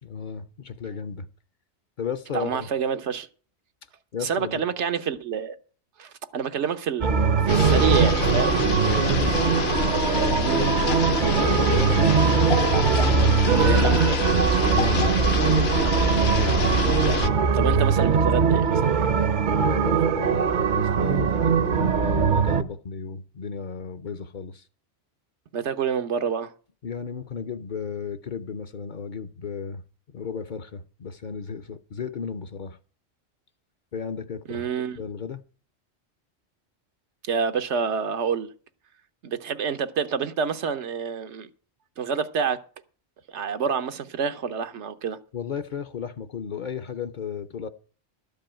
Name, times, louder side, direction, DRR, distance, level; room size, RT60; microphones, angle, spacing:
voice 1, 0.0-1.3 2.0-2.7 4.1-4.6 8.8-9.2 10.0-10.7 11.1-12.4 13.4-14.2 14.7-16.6 17.6-17.9 19.6-24.6 26.8-29.8 30.1-32.8 33.9-35.4 45.3-47.7, left 6 dB, 50° left, 0.7 m, -34 dB
voice 2, 2.3-3.3 4.2-5.6 6.0-7.1 7.4-8.6 10.4-10.6 13.6-14.0 17.5-19.3 25.5-26.5 34.5-35.0 37.3-38.5 39.2-41.5 42.0-42.6 43.3-45.2, right 6 dB, 85° right, 1.2 m, -27 dB
sound 1, 7.0-22.6, right 6 dB, 50° right, 0.7 m, -21 dB
sound 2, 7.5-17.3, left 5 dB, 70° left, 1.1 m, -27 dB
12.5 x 5.4 x 8.8 m
omnidirectional pair, 1.1 m